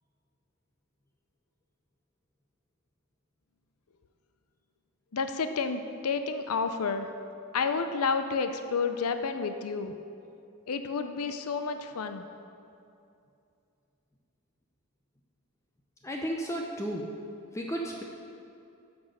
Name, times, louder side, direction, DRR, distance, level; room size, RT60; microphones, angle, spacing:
voice 1, 5.1-7.1 7.5-9.9 10.7-12.3, left 5 dB, 90° left, 8 dB, 0.6 m, -30 dB
voice 2, 16.0-17.1 17.5-18.0, right 1 dB, 15° left, 0 dB, 0.6 m, -33 dB
9.5 x 6.1 x 6.4 m, 2.6 s
head